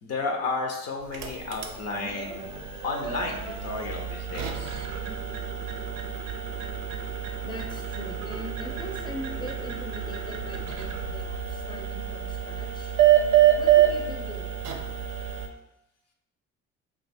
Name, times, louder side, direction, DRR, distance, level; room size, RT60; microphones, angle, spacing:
voice 1, 0.0-4.8, left 3 dB, 55° left, 2 dB, 0.6 m, -32 dB
sound 1, 1.0-15.5, right 11 dB, 85° right, 0.5 m, -27 dB
voice 2, 7.4-12.9 13.6-14.7, equal, 15° left, 1 dB, 0.6 m, -41 dB
2.7 x 2.3 x 4.2 m, 0.91 s
cardioid pair, 85°, 31 cm